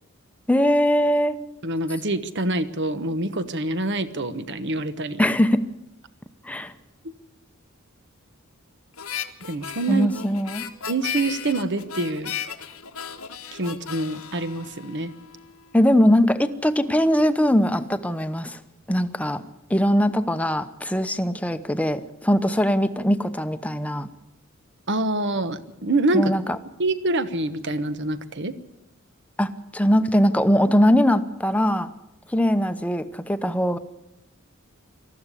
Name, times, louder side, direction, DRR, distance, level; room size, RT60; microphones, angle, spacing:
voice 1, 0.5-1.3 5.2-5.6 6.4-6.7 9.9-10.7 15.7-18.6 18.9-19.4 19.7-24.1 26.1-26.6 29.4-31.9 32.3-33.8, equal, 5° left, 10 dB, 0.9 m, -21 dB
voice 2, 1.6-5.2 9.4-10.1 10.9-12.3 13.5-15.1 24.9-26.3 26.8-28.5, right 2 dB, 55° right, 12 dB, 1.2 m, -26 dB
Harmonica, 9.0-15.4, left 8 dB, 90° left, 1.5 m, -35 dB
19.5 x 14.0 x 10.0 m, 0.90 s
head